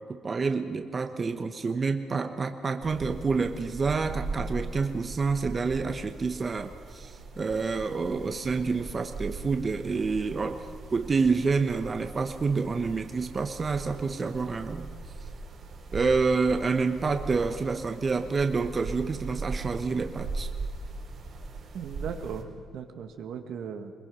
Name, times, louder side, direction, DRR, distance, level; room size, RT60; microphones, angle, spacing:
voice 1, 0.0-10.6 10.9-14.9 15.9-20.5, right 4 dB, 35° right, 7 dB, 1.2 m, -28 dB
sound 1, 2.8-22.4, right 3 dB, 60° right, 4.1 m, -40 dB
voice 2, 21.7-23.9, right 7 dB, 75° right, 5 dB, 1.8 m, -37 dB
22.5 x 21.0 x 5.6 m, 2.2 s
cardioid pair, 90°, 0 cm